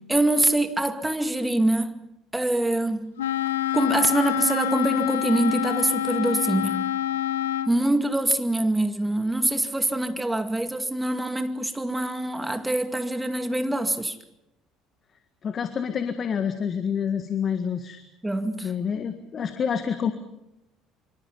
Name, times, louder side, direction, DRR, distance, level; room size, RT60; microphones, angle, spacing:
voice 1, 0.1-2.0 2.3-3.1 3.7-6.8 7.7-14.2 18.2-18.7, right 1 dB, 10° right, 2.1 m, -24 dB
Wind instrument woodwind instrument, 3.2-7.8, left 11 dB, 75° left, 0.9 m, -26 dB
voice 2, 15.4-18.0 18.6-20.1, left 7 dB, 40° left, 1.7 m, -27 dB
25.5 x 25.5 x 5.4 m
figure-of-eight pair, 60°, 0 cm